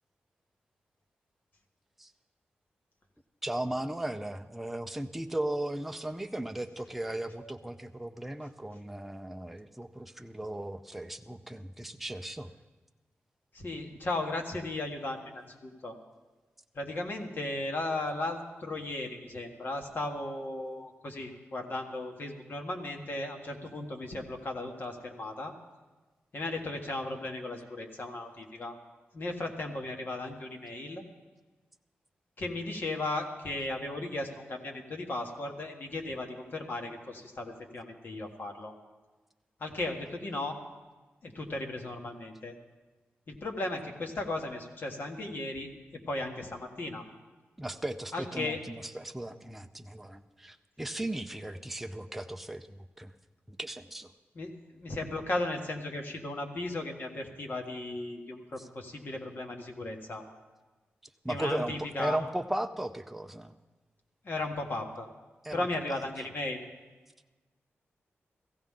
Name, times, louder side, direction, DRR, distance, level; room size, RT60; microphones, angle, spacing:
voice 1, 3.4-12.5 47.6-53.1 53.5-54.1 58.6-58.7 61.2-63.5 65.4-66.0, right 1 dB, 5° right, 7 dB, 0.5 m, -36 dB
voice 2, 13.5-15.9 16.7-25.5 26.3-28.7 29.1-31.0 32.4-38.7 39.6-40.6 41.2-42.5 43.3-45.7 46.1-47.0 48.1-48.6 54.3-54.5 54.8-60.2 61.3-62.2 64.2-65.1 65.5-66.7, left 2 dB, 50° left, 3 dB, 1.5 m, -36 dB
16.0 x 15.5 x 3.7 m, 1.2 s
wide cardioid pair, 135°, 4 cm